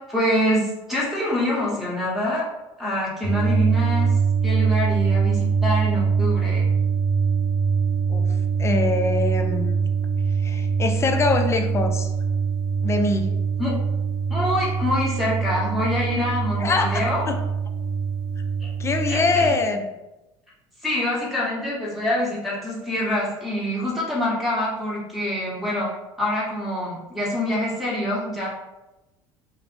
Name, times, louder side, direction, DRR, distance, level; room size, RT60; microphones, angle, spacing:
voice 1, 0.1-2.4 2.8-4.1 4.4-6.6 13.6-13.7 14.3-17.2 18.6-18.7 19.1-19.5 20.8-25.9 26.2-28.5, left 1 dB, ahead, -6 dB, 1.2 m, -25 dB
sound 1, 3.2-19.5, right 5 dB, 85° right, 0.7 m, -23 dB
voice 2, 8.6-9.9 10.3-12.1 12.8-13.3 16.6-17.4 18.8-19.8, left 3 dB, 20° left, 5 dB, 0.4 m, -24 dB
2.5 x 2.0 x 3.2 m, 0.99 s
hypercardioid pair, 70°, 13 cm